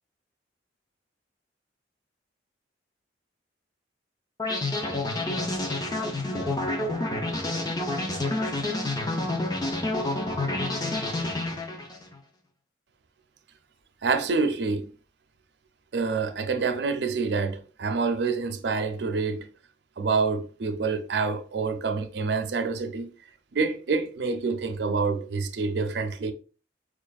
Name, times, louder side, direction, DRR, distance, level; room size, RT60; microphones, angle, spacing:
sound 1, 4.4-12.1, left 2 dB, 20° left, 0.5 m, -28 dB
voice 1, 14.0-14.9 15.9-19.5 20.0-23.1 23.5-26.3, right 4 dB, 70° right, 0.5 m, -27 dB
4.9 x 2.5 x 2.3 m
head